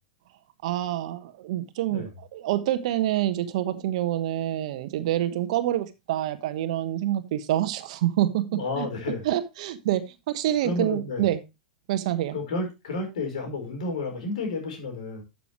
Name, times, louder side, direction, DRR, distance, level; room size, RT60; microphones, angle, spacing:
voice 1, 0.6-8.4 8.7-8.9 9.2-11.4 11.9-12.4, right 13 dB, 55° right, 1.2 m, -27 dB
voice 2, 8.5-9.2 10.6-11.2 12.3-15.2, left 3 dB, 65° left, 4.8 m, -31 dB
12.5 x 6.8 x 3.1 m
figure-of-eight pair, 95°, 4 cm